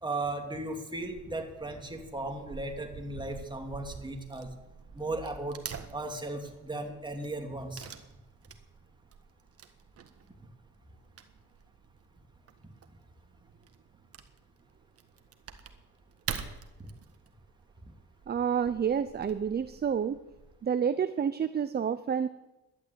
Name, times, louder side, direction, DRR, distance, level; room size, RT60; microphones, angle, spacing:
voice 1, 0.0-4.5 4.9-5.6 5.9-7.8, right 2 dB, 15° right, 2 dB, 2.7 m, -36 dB
Wood / Tearing, 1.0-20.6, right 7 dB, 50° right, 1.5 m, -47 dB
voice 2, 18.3-20.2 20.6-22.3, right 7 dB, 35° right, 13 dB, 0.6 m, -29 dB
12.0 x 11.0 x 8.2 m, 1.0 s
cardioid pair, 90°, 30 cm